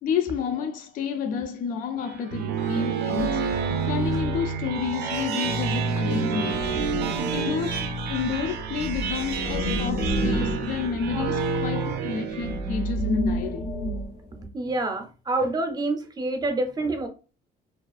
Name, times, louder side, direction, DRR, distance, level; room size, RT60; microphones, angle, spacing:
voice 1, 0.0-3.4 3.9-6.9 7.3-13.7, left 6 dB, 55° left, 0.4 m, -30 dB
sound 1, 2.1-12.9, right 5 dB, 75° right, 0.4 m, -28 dB
sound 2, 6.5-7.5 8.5-14.4, equal, 90° left, 0.9 m, -30 dB
voice 2, 14.5-17.1, right 2 dB, 25° right, 0.5 m, -27 dB
2.4 x 2.3 x 2.4 m
cardioid pair, 110°, 17 cm